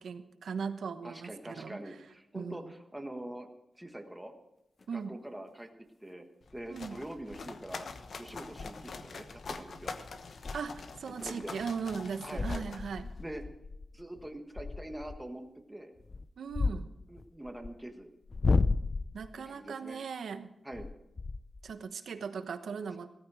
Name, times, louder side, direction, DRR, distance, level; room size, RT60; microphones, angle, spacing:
voice 1, 0.0-1.8 2.3-2.7 4.9-5.2 6.7-7.0 10.5-13.1 16.4-16.9 19.1-20.5 21.6-23.1, right 6 dB, 90° right, 10 dB, 1.0 m, -38 dB
voice 2, 1.0-3.5 3.7-4.3 4.9-5.7 6.0-6.2 6.5-7.9 8.2-10.0 11.1-11.5 12.2-12.6 13.2-13.4 13.9-15.4 15.7-15.9 17.1-18.1 19.4-20.0 20.6-20.9, right 1 dB, 10° right, 4 dB, 1.4 m, -44 dB
sound 1, 4.8-4.9 8.6-8.8 9.3-9.6 9.9-10.0 10.4-10.7 11.2-11.3 11.9-12.0 12.3-15.2 16.0-17.7 18.2-19.3 20.7-21.8, left 3 dB, 40° left, 0.4 m, -33 dB
sound 2, 6.4-13.4, left 4 dB, 65° left, 1.1 m, -45 dB
16.0 x 14.0 x 4.9 m, 0.87 s
wide cardioid pair, 135°, 0 cm